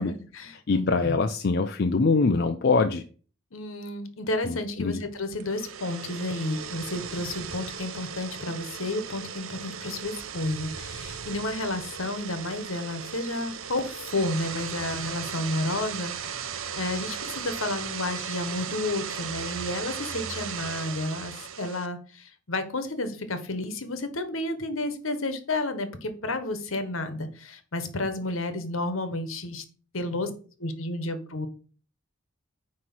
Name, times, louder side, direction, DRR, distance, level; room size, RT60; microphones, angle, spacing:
voice 1, 0.0-1.2 3.5-29.6 29.9-30.3 30.6-31.5, left 2 dB, 75° left, 9 dB, 1.2 m, -31 dB
voice 2, 0.7-3.0 4.4-5.0, left 4 dB, 50° left, 6 dB, 0.5 m, -24 dB
sound 1, 5.3-21.9, right 7 dB, 75° right, 0.7 m, -37 dB
9.4 x 3.2 x 6.0 m, 0.40 s
head